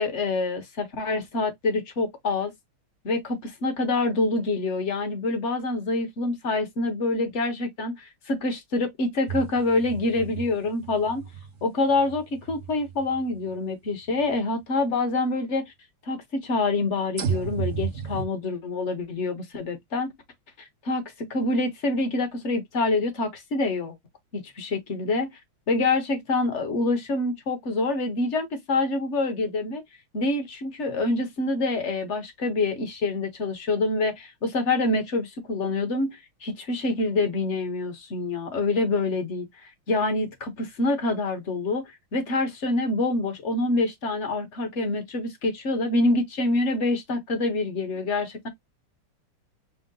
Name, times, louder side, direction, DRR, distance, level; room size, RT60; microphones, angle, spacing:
voice 1, 0.0-2.5 3.0-11.3 11.6-15.7 16.1-20.1 20.6-24.0 24.3-25.3 25.7-29.8 30.1-48.5, left 2 dB, 45° left, 1.0 m, -26 dB
sound 1, 9.3-13.5 14.2-14.3 17.2-18.3, right 7 dB, 60° right, 0.7 m, -33 dB
5.5 x 2.1 x 3.8 m
omnidirectional pair, 2.3 m